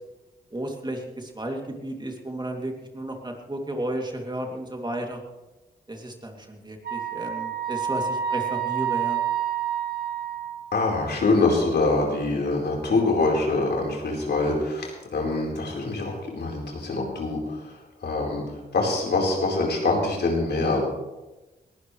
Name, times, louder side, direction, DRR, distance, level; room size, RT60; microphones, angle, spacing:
voice 1, 0.5-5.2 5.9-9.2, right 1 dB, 25° right, 2 dB, 2.8 m, -33 dB
Wind instrument woodwind instrument, 6.8-10.7, right 9 dB, 60° right, 2.2 m, -28 dB
voice 2, 10.7-20.8, left 3 dB, 70° left, -1 dB, 4.4 m, -25 dB
20.5 x 15.0 x 3.3 m, 1.1 s
cardioid pair, 55°, 18 cm